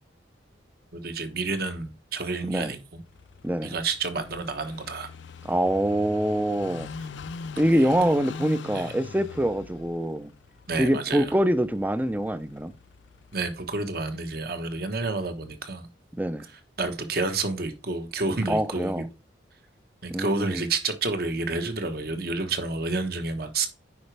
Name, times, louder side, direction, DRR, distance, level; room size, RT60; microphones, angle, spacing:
voice 1, 0.9-3.0 3.6-5.1 7.0-7.1 7.7-7.9 8.7-8.9 10.7-11.3 13.3-15.9 16.8-18.9 20.0-23.7, right 3 dB, 50° right, 1.2 m, -30 dB
Car passing by / Idling, 3.1-13.7, left 4 dB, 75° left, 0.5 m, -42 dB
voice 2, 3.4-3.7 5.4-6.9 7.6-10.3 10.8-12.7 16.2-16.4 18.5-19.0 20.1-20.6, right 1 dB, 10° right, 0.4 m, -25 dB
9.5 x 4.9 x 3.3 m
head